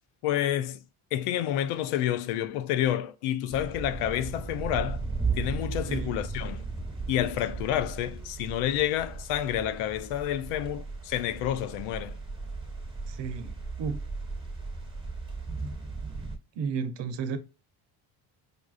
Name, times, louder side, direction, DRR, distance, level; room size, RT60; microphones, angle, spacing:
voice 1, 0.2-0.8 1.1-5.0 5.3-6.6 7.1-12.2, left 11 dB, 85° left, 0.6 m, -29 dB
sound 1, 3.5-16.4, right 4 dB, 10° right, 1.4 m, -36 dB
voice 2, 13.1-13.5 13.8-14.0 16.5-17.4, right 6 dB, 60° right, 0.8 m, -32 dB
5.1 x 2.4 x 2.4 m
cardioid pair, 80°, 50 cm